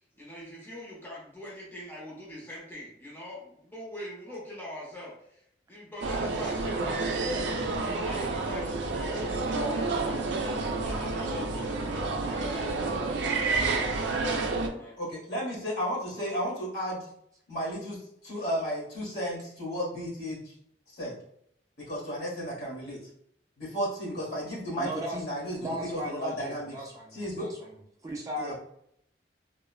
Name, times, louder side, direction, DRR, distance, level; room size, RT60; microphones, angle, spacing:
voice 1, 0.1-5.4 5.7-7.4 7.8-10.6 10.8-15.0, left 1 dB, 10° left, -5 dB, 0.6 m, -43 dB
sound 1, 6.0-14.7, right 3 dB, 90° right, 0.4 m, -29 dB
voice 2, 15.0-17.0 17.5-20.4 20.9-21.1 21.8-23.0 23.6-26.8 27.1-27.5 28.4-28.5, equal, 65° left, -6 dB, 1.2 m, -33 dB
voice 3, 24.7-25.2 25.6-28.5, right 1 dB, 20° right, -2 dB, 0.3 m, -37 dB
3.0 x 2.0 x 2.3 m, 0.72 s
head